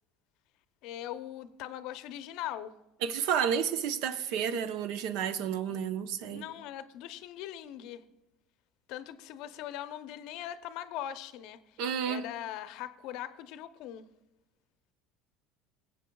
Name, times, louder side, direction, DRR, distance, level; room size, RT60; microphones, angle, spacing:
voice 1, 0.8-2.8 6.3-8.0 8.9-14.1, left 12 dB, 65° left, 0.6 m, -41 dB
voice 2, 3.0-6.5 11.8-12.2, right 8 dB, 70° right, 0.7 m, -31 dB
19.5 x 7.9 x 2.3 m
hypercardioid pair, 85°, 0 cm